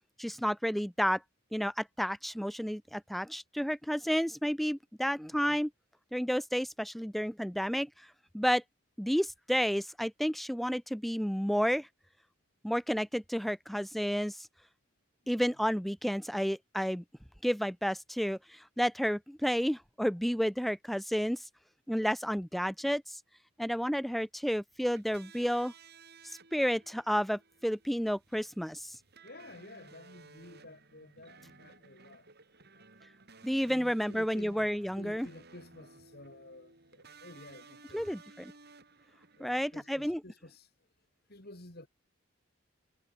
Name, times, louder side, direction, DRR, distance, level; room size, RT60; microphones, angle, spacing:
voice 1, 0.2-1.2 1.5-5.7 6.1-7.9 8.3-8.6 9.0-11.9 12.6-14.4 15.3-17.0 17.4-21.4 21.9-23.2 23.6-25.7 26.2-29.0 33.4-35.3 37.9-38.5 39.4-40.2, equal, ahead, 0.5 m, -31 dB
voice 2, 5.3-5.6 15.2-15.3 29.2-32.3 32.7-32.9 33.6-34.7 35.0-38.2 39.4-40.7 41.3-41.9, left 1 dB, 50° left, 3.6 m, -52 dB
sound 1, 24.7-39.9, right 4 dB, 50° right, 5.2 m, -57 dB
head